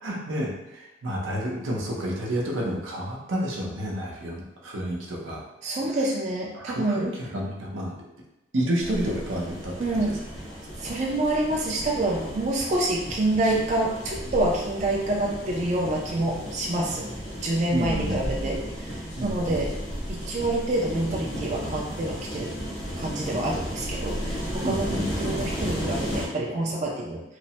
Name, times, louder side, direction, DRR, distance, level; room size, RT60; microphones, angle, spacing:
voice 1, 0.0-5.4 6.5-7.9 8.5-10.1 17.7-18.2 19.2-19.6 24.6-25.2, equal, 90° right, -2 dB, 0.6 m, -30 dB
voice 2, 5.6-7.1 9.8-10.2 10.8-17.1 17.4-19.7 20.1-22.5 23.0-24.9 25.2-27.2, right 2 dB, 35° right, -2 dB, 0.3 m, -27 dB
sound 1, 8.8-26.3, equal, 60° left, 1.1 m, -34 dB
3.1 x 2.0 x 2.7 m, 0.94 s
head